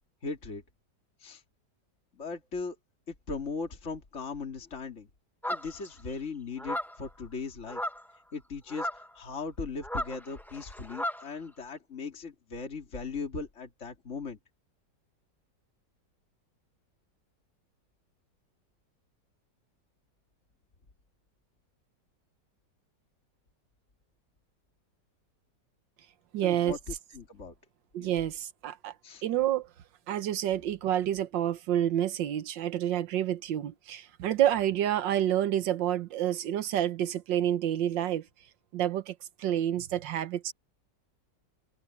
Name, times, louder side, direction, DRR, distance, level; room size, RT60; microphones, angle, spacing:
voice 1, 0.2-0.6 1.2-1.4 2.1-2.7 3.1-5.1 5.5-7.8 8.3-14.4 26.4-27.5 28.0-28.1 29.0-29.2, left 4 dB, 40° left, 2.8 m, -38 dB
sound 1, 5.4-5.9 6.6-7.1 7.7-8.1 8.7-9.1 9.8-11.3, equal, ahead, 0.9 m, -35 dB
voice 2, 26.3-26.8 27.9-28.9 29.2-29.6 30.1-38.2 38.7-39.1 39.4-40.5, right 11 dB, 85° right, 1.6 m, -28 dB
omnidirectional pair, 1.9 m